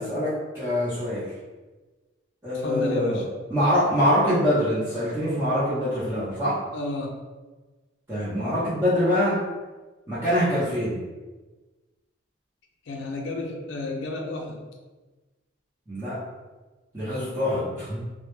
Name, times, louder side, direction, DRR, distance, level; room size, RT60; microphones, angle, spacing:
voice 1, 0.0-1.3 2.4-3.2 3.5-6.6 8.1-9.4 10.1-11.0 15.9-16.2 16.9-18.0, equal, 15° right, -13 dB, 0.6 m, -24 dB
voice 2, 2.6-3.2 6.7-7.1 12.9-14.6, left 2 dB, 65° left, 2 dB, 0.4 m, -31 dB
2.1 x 2.1 x 3.0 m, 1.2 s
head